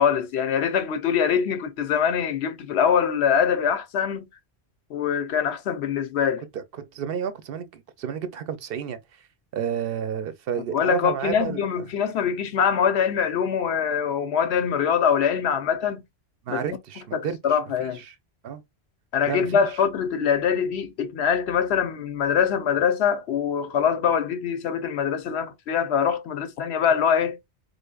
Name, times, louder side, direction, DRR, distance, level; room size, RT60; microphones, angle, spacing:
voice 1, 0.0-4.3 4.9-6.4 10.7-16.0 16.5-16.6 17.1-18.0 19.1-27.4, left 7 dB, 85° left, 0.9 m, -23 dB
voice 2, 6.5-9.0 9.5-11.6 16.5-18.1 18.4-18.6 19.3-19.7, right 7 dB, 65° right, 0.8 m, -31 dB
3.9 x 3.4 x 2.2 m
omnidirectional pair, 1.1 m